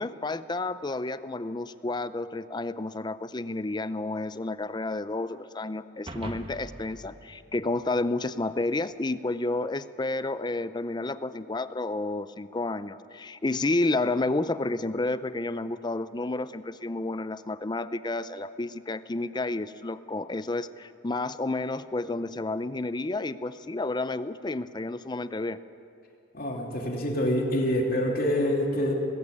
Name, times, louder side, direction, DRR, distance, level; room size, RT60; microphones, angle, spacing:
voice 1, 0.0-25.6, left 2 dB, 25° left, 14 dB, 0.5 m, -31 dB
sound 1, 6.1-8.6, right 1 dB, 30° right, 1.1 m, -43 dB
voice 2, 26.3-28.9, left 1 dB, 50° left, 0 dB, 3.0 m, -26 dB
19.5 x 16.0 x 8.7 m, 2.5 s
head